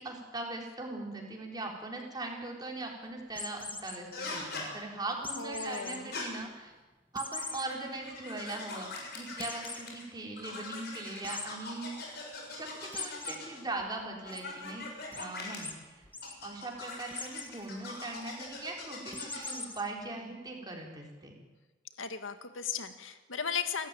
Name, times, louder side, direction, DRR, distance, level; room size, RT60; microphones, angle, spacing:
voice 1, 0.0-6.7 7.1-12.1 12.5-14.8 15.1-16.0 16.4-21.4, right 2 dB, 20° right, 0 dB, 4.2 m, -40 dB
sound 1, 3.3-4.0 5.2-6.0 6.4-6.5 7.1-7.6 8.1-8.2 8.5-8.6 9.4-9.8 11.2-11.5 12.9-13.3 13.8-14.4 15.1-15.3 15.6-15.7 16.0-16.3 17.1-17.5 19.1-19.8, left 3 dB, 10° left, 1.5 m, -40 dB
sound 2, 4.1-4.7 5.6-6.2 7.2-10.0 10.4-13.6 14.2-15.6 16.2-19.7, left 3 dB, 55° left, 6.7 m, -42 dB
voice 2, 5.4-6.1 22.0-23.9, left 6 dB, 90° left, 9 dB, 1.8 m, -36 dB
28.0 x 13.5 x 9.2 m, 1.2 s
head